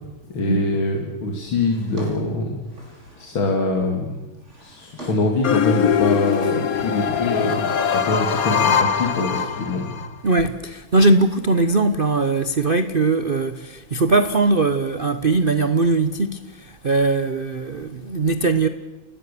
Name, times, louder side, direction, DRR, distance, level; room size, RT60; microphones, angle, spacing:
voice 1, 0.3-2.6 3.2-4.2 4.6-9.9, left 2 dB, 70° left, 3.2 m, -24 dB
Drawer open or close, 1.5-3.4 4.2-5.4 5.8-6.7 7.0-8.2, right 1 dB, 30° right, 6.2 m, -43 dB
sound 1, 5.4-10.1, left 8 dB, 50° left, 1.2 m, -21 dB
voice 2, 10.2-18.7, right 3 dB, 60° right, 0.5 m, -20 dB
30.0 x 19.5 x 6.9 m
omnidirectional pair, 2.3 m